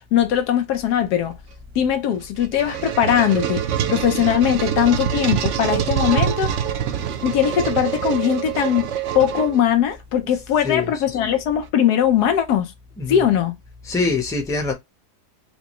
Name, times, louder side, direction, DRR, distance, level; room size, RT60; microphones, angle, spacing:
voice 1, 0.1-1.4 1.7-6.6 7.2-8.9 9.1-12.7 13.1-13.6, left 9 dB, 90° left, 1.3 m, -20 dB
sound 1, 2.2-9.9, right 9 dB, 65° right, 0.8 m, -25 dB
voice 2, 13.9-14.7, left 4 dB, 5° left, 0.6 m, -23 dB
4.8 x 2.2 x 3.0 m
omnidirectional pair, 1.6 m